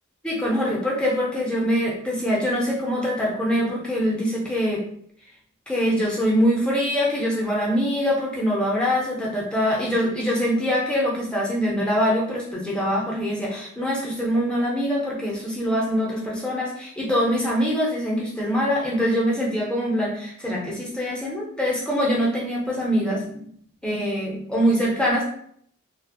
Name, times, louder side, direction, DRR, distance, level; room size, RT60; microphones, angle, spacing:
voice 1, 0.2-4.8 5.7-23.4 23.8-25.2, equal, 5° left, -3 dB, 0.5 m, -24 dB
2.7 x 2.0 x 2.5 m, 0.65 s
head